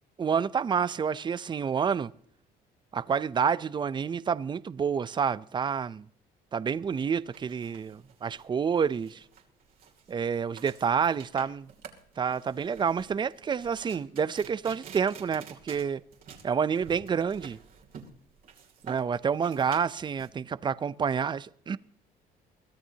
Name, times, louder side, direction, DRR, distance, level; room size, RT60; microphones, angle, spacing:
voice 1, 0.2-2.1 2.9-6.1 6.5-9.2 10.1-11.7 12.2-16.0 16.4-17.6 18.8-21.8, right 6 dB, 25° right, 0.5 m, -28 dB
sound 1, 6.7-20.3, right 7 dB, 60° right, 2.7 m, -49 dB
22.5 x 14.5 x 2.8 m
cardioid pair, 110°, 17 cm